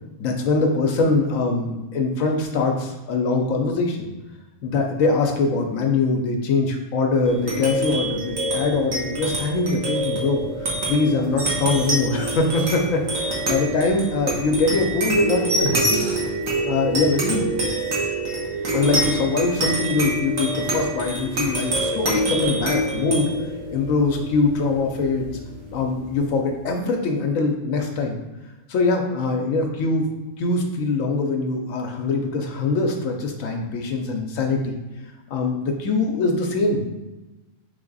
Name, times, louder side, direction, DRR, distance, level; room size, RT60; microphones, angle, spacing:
voice 1, 0.2-4.1 4.6-16.1 16.6-17.5 18.7-23.3 23.7-25.4 25.7-28.2 28.7-30.1 30.4-34.8 35.3-36.9, left 3 dB, 80° left, 2 dB, 1.0 m, -23 dB
sound 1, 7.2-26.1, right 1 dB, 80° right, 1.5 m, -26 dB
sound 2, 11.2-13.4 13.8-13.9 14.3-14.4 14.7-14.8 15.1-16.4 16.9-17.0 17.4-17.5 17.7-18.2 18.9-19.1, left 1 dB, 25° right, 0.7 m, -30 dB
3.5 x 3.3 x 3.9 m, 1.1 s
omnidirectional pair, 1.4 m